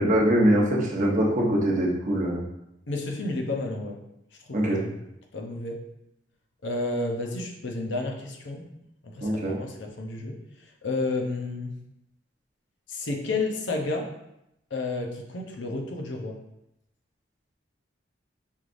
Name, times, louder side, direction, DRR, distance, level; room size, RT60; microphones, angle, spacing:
voice 1, 0.0-2.4 4.5-4.8 9.2-9.5, equal, 45° right, -3 dB, 0.9 m, -23 dB
voice 2, 2.9-4.0 4.5-4.9 5.3-5.8 6.6-8.6 9.1-10.3 10.6-11.7 12.9-14.1 14.7-16.4, left 2 dB, 70° left, 2 dB, 0.7 m, -31 dB
5.4 x 3.2 x 2.5 m, 0.84 s
head